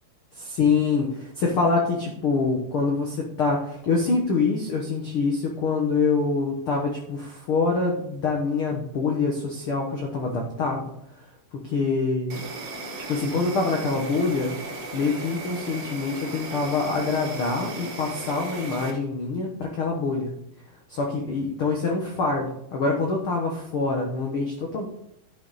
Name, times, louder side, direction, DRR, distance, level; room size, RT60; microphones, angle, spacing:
voice 1, 0.3-10.9 11.5-12.4 13.1-14.6 14.9-20.3 20.9-24.9, left 4 dB, 65° left, 0 dB, 1.3 m, -25 dB
Insect, 12.3-18.9, right 3 dB, 55° right, 2.1 m, -36 dB
12.0 x 5.8 x 4.1 m, 0.76 s
omnidirectional pair, 4.3 m